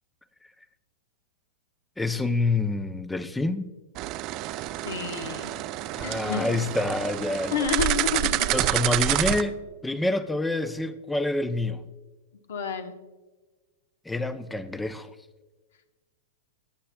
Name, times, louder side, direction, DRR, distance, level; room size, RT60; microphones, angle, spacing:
voice 1, 2.0-3.7 6.0-7.7 8.5-11.8 14.1-15.1, left 2 dB, 5° left, 13 dB, 0.5 m, -27 dB
sound 1, 4.0-9.4, right 15 dB, 45° right, 0.4 m, -28 dB
voice 2, 4.8-5.5 6.0-6.5 7.5-8.5 12.5-13.0, left 6 dB, 75° left, 7 dB, 1.1 m, -30 dB
18.0 x 8.7 x 2.3 m, 1.2 s
hypercardioid pair, 120°, 0 cm